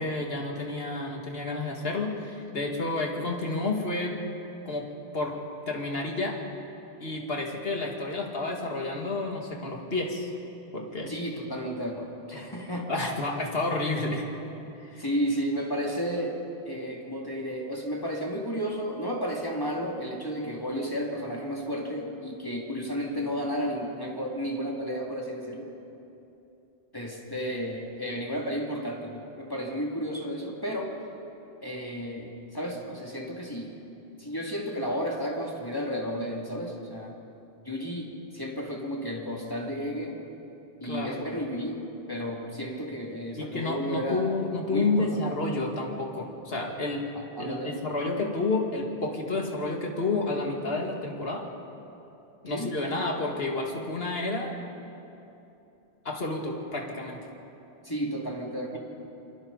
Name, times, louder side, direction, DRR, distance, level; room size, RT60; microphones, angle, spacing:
voice 1, 0.0-4.2 4.7-6.4 7.0-10.3 10.7-11.2 12.3-12.5 12.9-14.3 14.8-15.0 40.8-41.1 43.4-47.1 47.4-51.5 52.4-54.6 56.0-57.3, left 2 dB, 65° left, 1 dB, 2.4 m, -30 dB
voice 2, 11.1-13.1 15.0-16.4 16.7-25.7 26.9-30.9 31.6-33.8 34.2-37.2 37.6-40.2 40.8-41.8 42.1-44.3 44.7-45.2 47.1-47.8 52.5-52.7 57.8-58.8, equal, 20° left, -2 dB, 2.5 m, -32 dB
28.0 x 23.5 x 4.0 m, 2.9 s
omnidirectional pair, 1.1 m